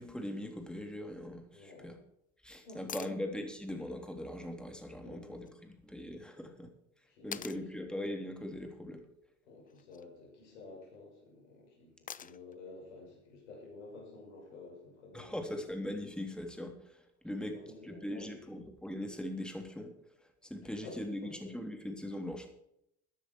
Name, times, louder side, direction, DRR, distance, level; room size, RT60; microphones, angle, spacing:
voice 1, 0.0-1.9 2.4-5.5 5.8-6.7 7.2-9.0 15.1-17.6 17.8-19.9 20.4-22.5, left 1 dB, ahead, 4 dB, 3.3 m, -40 dB
voice 2, 1.5-2.0 2.6-3.2 5.0-5.6 7.1-7.5 9.4-15.5 17.4-18.6 20.6-21.5 22.0-22.2, left 3 dB, 80° left, 0 dB, 6.1 m, -51 dB
sound 1, 2.9-3.2 5.4-5.5 7.3-7.6 9.7-10.1 12.1-12.6 14.7-14.8, left 8 dB, 25° left, 0.7 m, -44 dB
15.0 x 9.9 x 4.7 m, 0.74 s
hypercardioid pair, 70°, 34 cm